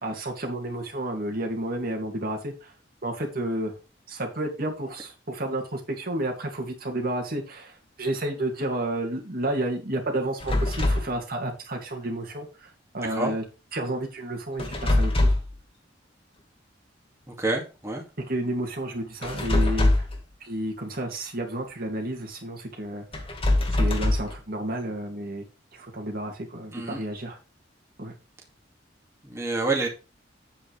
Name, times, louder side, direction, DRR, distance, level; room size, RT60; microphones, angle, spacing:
voice 1, 0.0-2.7 3.0-3.8 4.1-13.4 13.7-15.3 18.2-20.1 20.4-23.3 23.7-25.4 25.7-27.4 28.0-28.1, right 1 dB, 50° right, 1 dB, 2.4 m, -31 dB
sound 1, 10.4-11.1 14.6-15.6 19.2-20.2 23.1-24.4, left 1 dB, 30° left, 1.9 m, -23 dB
voice 2, 13.0-13.3 17.3-18.0 26.7-27.0 29.2-29.9, right 2 dB, 15° right, -1 dB, 2.2 m, -28 dB
9.1 x 8.4 x 3.4 m, 0.32 s
head